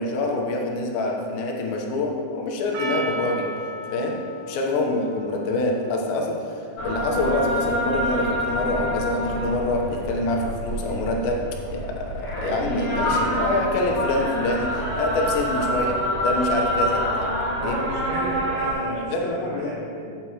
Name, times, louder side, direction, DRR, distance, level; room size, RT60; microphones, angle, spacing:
voice 1, 0.0-3.5 3.8-16.0 16.2-17.3 17.6-17.8 18.9-19.7, left 2 dB, 85° left, 1 dB, 3.2 m, -26 dB
Percussion, 2.7-7.7, right 1 dB, 90° right, 3.3 m, -36 dB
sound 1, 6.8-18.7, equal, 50° left, 2.1 m, -27 dB
voice 2, 17.6-20.1, right 1 dB, 55° right, -5 dB, 1.8 m, -33 dB
14.0 x 7.6 x 3.0 m, 2.3 s
omnidirectional pair, 5.1 m